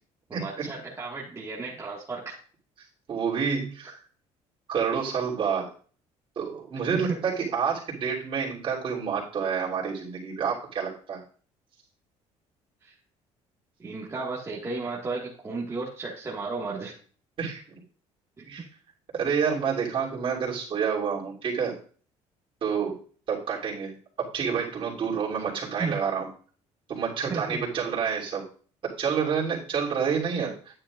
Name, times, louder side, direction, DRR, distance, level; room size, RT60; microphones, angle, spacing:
voice 1, 0.3-2.4 6.9-7.2 12.8-12.9 13.8-16.9 18.4-18.5 25.6-25.9 27.3-27.6, right 3 dB, 20° right, -5 dB, 1.7 m, -34 dB
voice 2, 3.1-3.9 4.7-5.6 6.3-11.2 17.4-17.6 18.5-18.6 19.1-21.8 22.6-23.0 23.3-23.9 24.3-26.3 26.9-28.4 28.8-30.5, right 6 dB, 45° right, -4 dB, 3.2 m, -28 dB
10.0 x 8.7 x 2.5 m, 0.43 s
cardioid pair, 115°, 13 cm